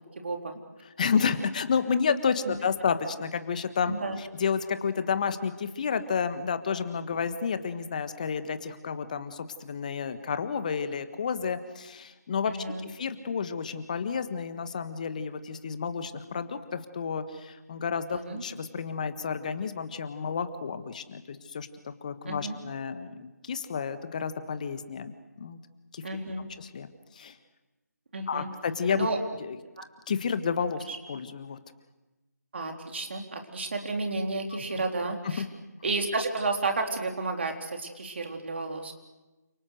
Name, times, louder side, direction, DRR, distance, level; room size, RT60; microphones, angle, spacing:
voice 1, 0.2-0.6 2.4-2.6 3.9-4.2 12.5-12.9 18.1-18.4 22.3-22.6 26.0-26.5 28.1-28.5 28.9-29.2 29.8-29.9 30.9-31.0 32.5-35.4 35.8-38.9, right 3 dB, 40° right, 3 dB, 4.0 m, -32 dB
voice 2, 1.0-12.6 12.8-25.6 25.9-26.0 26.6-26.9 27.1-27.4 28.3-29.1 29.4-29.6 30.1-31.6 35.2-35.5, left 6 dB, 25° left, 11 dB, 1.5 m, -31 dB
29.5 x 27.5 x 6.7 m, 1.1 s
figure-of-eight pair, 160°, 9 cm